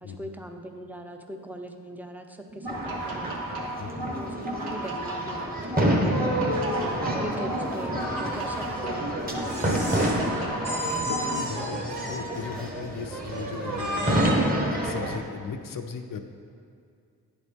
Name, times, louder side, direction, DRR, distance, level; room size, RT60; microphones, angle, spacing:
voice 1, 0.0-5.9 7.2-9.2 10.8-11.0, right 1 dB, 5° right, 4 dB, 0.6 m, -40 dB
sound 1, 2.5-11.4, right 1 dB, 75° right, 1.3 m, -34 dB
sound 2, 2.7-15.2, equal, 25° right, 1.2 m, -29 dB
voice 2, 3.8-4.2 6.6-7.0 7.3-7.5 9.5-9.9 10.8-14.2 14.6-16.2, left 5 dB, 60° left, 7 dB, 0.6 m, -38 dB
sound 3, 6.1-8.7 9.3-10.3 10.6-12.4 13.1-14.5, right 1 dB, 55° right, 1.3 m, -33 dB
10.5 x 4.1 x 3.5 m, 2.4 s
cardioid pair, 50°, 38 cm